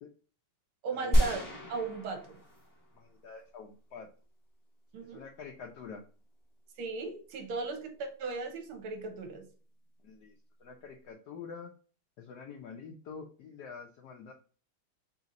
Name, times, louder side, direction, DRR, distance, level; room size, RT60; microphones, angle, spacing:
voice 1, 0.8-1.4 1.7-2.4 4.9-5.2 6.8-9.5, right 4 dB, 75° right, 5 dB, 1.8 m, -37 dB
sound 1, 1.1-3.1 3.4-3.5, equal, 15° left, 0.6 m, -29 dB
voice 2, 3.0-4.1 5.0-6.0 10.0-10.4 10.6-11.7 12.2-14.3, left 5 dB, 75° left, 3 dB, 0.9 m, -46 dB
4.2 x 2.9 x 3.8 m, 0.39 s
omnidirectional pair, 2.4 m